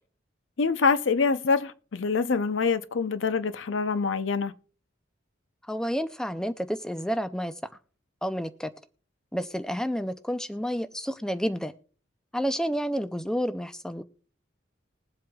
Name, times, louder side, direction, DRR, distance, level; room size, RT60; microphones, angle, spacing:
voice 1, 0.6-4.5, left 5 dB, 75° left, 0.6 m, -25 dB
voice 2, 5.7-7.5 8.2-8.7 9.3-11.7 12.3-14.0, equal, 5° left, 0.4 m, -30 dB
21.0 x 7.7 x 2.3 m
head